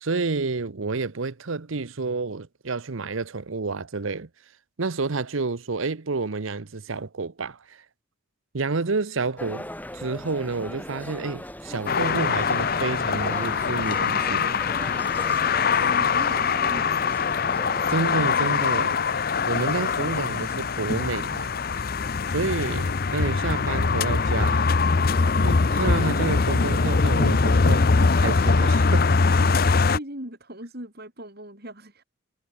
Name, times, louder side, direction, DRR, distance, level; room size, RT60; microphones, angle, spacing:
voice 1, 0.0-4.3 4.8-7.8 8.5-9.7 9.9-14.6 17.9-21.5 22.3-24.7 25.4-29.1, right 3 dB, 70° right, 0.9 m, -29 dB
sound 1, 9.4-18.2, left 1 dB, 10° left, 3.7 m, -39 dB
sound 2, 11.9-30.0, left 4 dB, 45° left, 0.6 m, -22 dB
voice 2, 15.8-17.1 29.4-32.0, right 1 dB, 45° right, 6.0 m, -39 dB
head